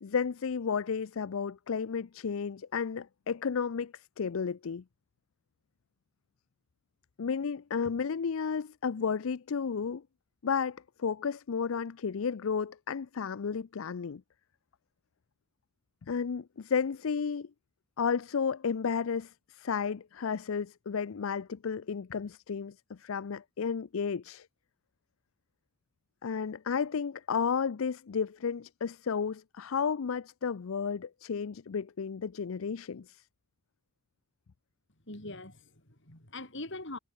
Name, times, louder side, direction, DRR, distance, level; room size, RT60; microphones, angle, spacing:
voice 1, 0.0-4.8 7.2-10.0 10.4-14.2 16.1-17.5 18.0-24.5 26.2-33.2, left 6 dB, 75° left, 0.5 m, -32 dB
voice 2, 35.0-37.0, left 2 dB, 60° left, 5.8 m, -42 dB
head